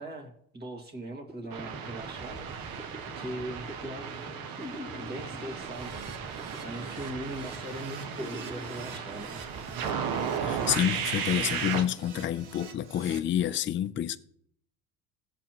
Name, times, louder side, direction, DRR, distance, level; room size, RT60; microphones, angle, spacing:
voice 1, 0.0-4.1 5.0-6.1 6.6-9.4, right 1 dB, 25° right, 2.1 m, -40 dB
sound 1, 1.3-11.8, equal, ahead, 1.0 m, -45 dB
sound 2, 1.5-11.8, right 7 dB, 70° right, 1.2 m, -35 dB
Keyboard (musical), 5.7-13.2, right 5 dB, 55° right, 1.7 m, -48 dB
voice 2, 10.4-14.2, left 10 dB, 30° left, 0.5 m, -28 dB
15.5 x 7.3 x 3.0 m
supercardioid pair, 110°, 37 cm